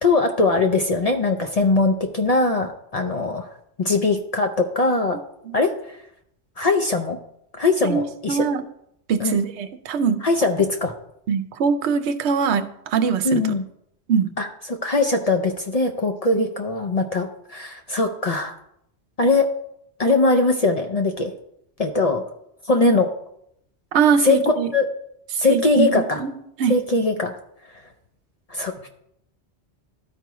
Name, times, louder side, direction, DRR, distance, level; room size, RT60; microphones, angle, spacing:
voice 1, 0.0-3.5 3.8-5.2 5.5-6.0 6.6-7.2 7.5-8.4 9.2-9.3 10.2-10.9 13.2-13.6 14.4-18.5 19.2-19.5 20.0-21.3 21.8-22.2 22.7-23.1 24.2-24.4 24.7-24.9 25.4-26.2 26.7-27.4 28.5-28.9, left 3 dB, 45° left, 5 dB, 0.5 m, -21 dB
voice 2, 7.9-8.6 9.1-10.2 11.3-13.4 14.1-14.3 16.4-16.5 23.9-24.7 25.5-25.9 26.2-26.3 26.6-26.7, right 6 dB, 80° right, 9 dB, 0.9 m, -22 dB
12.5 x 4.6 x 3.0 m, 0.74 s
omnidirectional pair, 1.1 m